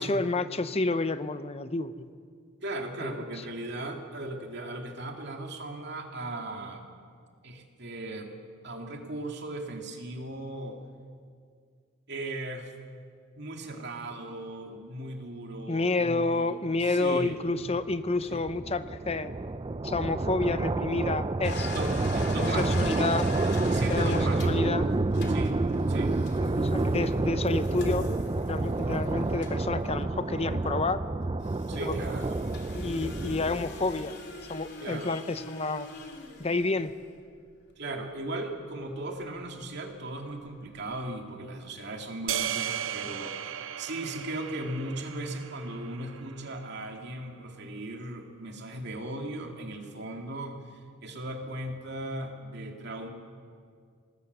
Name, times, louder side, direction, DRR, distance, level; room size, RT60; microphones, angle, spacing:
voice 1, 0.0-2.1 3.0-3.2 15.7-19.3 19.8-21.7 22.4-23.3 23.9-24.9 26.5-28.1 28.5-31.0 31.8-32.0 32.7-34.1 34.5-35.9 36.4-36.9, left 3 dB, 30° left, 12 dB, 0.8 m, -29 dB
voice 2, 2.6-6.9 7.4-8.3 8.6-10.8 12.1-12.7 13.4-16.6 16.8-17.4 18.3-18.4 21.7-23.0 23.7-24.7 25.3-25.6 25.9-26.2 31.7-32.4 34.8-35.1 37.8-50.7 51.0-53.1, right 1 dB, 55° right, 3 dB, 2.5 m, -37 dB
sound 1, 17.6-33.9, right 2 dB, 25° right, 0.5 m, -29 dB
sound 2, 21.4-30.8 31.4-37.4 38.8-38.9 39.3-39.4 40.5-40.6 40.7-40.9, left 2 dB, 55° left, 2.9 m, -43 dB
sound 3, 42.3-46.6, right 10 dB, 80° right, 0.7 m, -36 dB
25.0 x 19.0 x 6.9 m, 2.1 s
head